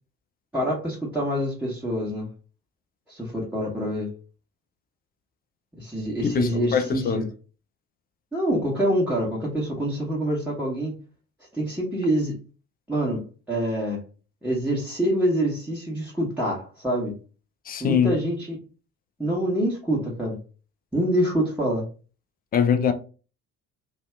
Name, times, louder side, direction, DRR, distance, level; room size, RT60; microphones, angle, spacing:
voice 1, 0.5-2.3 3.1-4.1 5.7-7.3 8.3-11.0 11.5-12.4 12.9-14.0 14.4-17.1 17.8-18.6 19.2-20.4 20.9-21.8, equal, 5° right, 1.0 m, -26 dB
voice 2, 6.2-7.2 17.7-18.2 22.5-22.9, left 7 dB, 25° left, 0.3 m, -22 dB
2.6 x 2.3 x 3.2 m
figure-of-eight pair, 50°, 43 cm